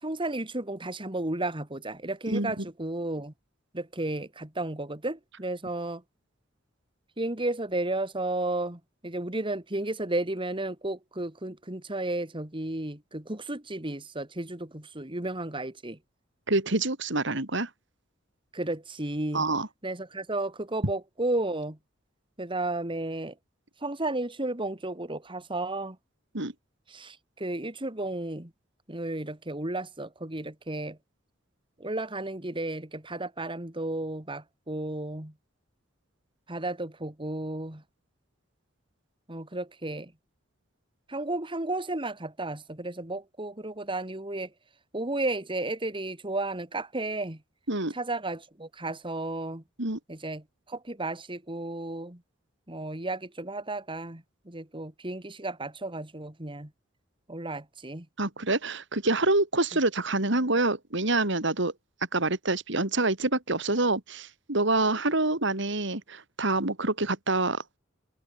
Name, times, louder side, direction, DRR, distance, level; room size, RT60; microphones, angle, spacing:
voice 1, 0.0-3.3 3.7-6.0 7.2-16.0 18.5-19.5 19.8-21.8 22.4-23.3 23.8-26.0 26.9-28.5 28.9-31.0 31.8-35.3 36.5-37.8 39.3-40.1 41.1-44.5 44.9-47.4 47.9-49.6 50.1-52.2 52.7-56.7 57.3-58.1, right 2 dB, 25° right, 2.5 m, -33 dB
voice 2, 2.3-2.6 16.5-17.7 19.3-19.7 26.3-26.5 47.7-47.9 49.8-50.0 58.2-61.7 62.1-67.6, right 2 dB, 65° right, 3.6 m, -26 dB
open air
head